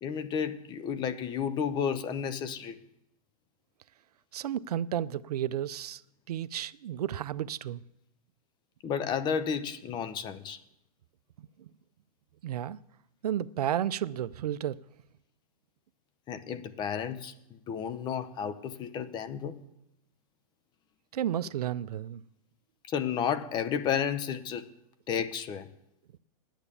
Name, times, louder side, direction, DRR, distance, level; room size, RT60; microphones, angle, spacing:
voice 1, 0.0-2.8 8.8-10.6 16.3-17.3 17.7-19.5 22.9-24.7 25.1-25.7, left 7 dB, 20° left, 0.8 m, -32 dB
voice 2, 4.3-6.0 6.3-7.8 11.6-11.7 12.4-12.8 13.2-14.8 21.1-22.2, right 11 dB, 80° right, 0.5 m, -32 dB
10.0 x 9.0 x 8.4 m
hypercardioid pair, 140°, 20 cm